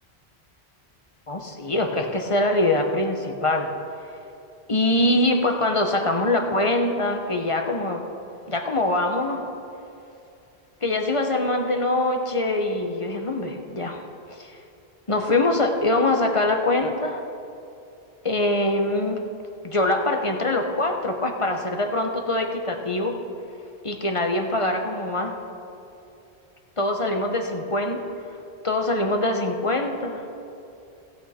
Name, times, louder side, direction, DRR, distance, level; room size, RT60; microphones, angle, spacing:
voice 1, 1.3-3.7 4.0-4.1 4.7-8.0 8.5-9.4 10.8-14.0 14.3-14.5 15.1-17.2 18.2-19.2 19.6-23.2 23.8-25.4 26.8-28.0 28.6-30.2, left 2 dB, 35° left, 4 dB, 0.9 m, -23 dB
16.5 x 8.2 x 4.3 m, 2.8 s
omnidirectional pair, 1.1 m